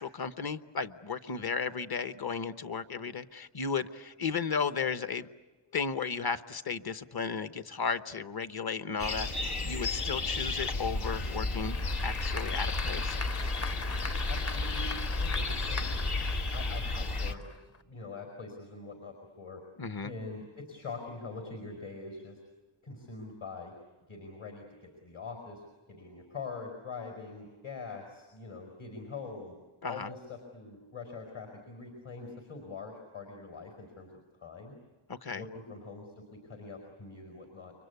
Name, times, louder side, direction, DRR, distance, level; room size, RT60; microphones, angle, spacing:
voice 1, 0.0-5.3 5.7-13.2 19.8-20.1 29.8-30.1 35.1-35.4, left 5 dB, 45° left, 12 dB, 1.0 m, -34 dB
sound 1, 9.0-17.3, left 3 dB, 90° left, 1.6 m, -32 dB
Applause / Crowd, 11.2-17.8, left 4 dB, 30° left, 0.8 m, -41 dB
voice 2, 14.3-15.9 16.5-17.4 17.8-19.6 20.0-22.4 22.8-23.7 24.1-29.5 29.9-34.1 34.4-34.7 35.3-37.7, left 4 dB, 65° left, 3 dB, 4.8 m, -44 dB
30.0 x 24.0 x 8.2 m, 1.2 s
wide cardioid pair, 95°, 50 cm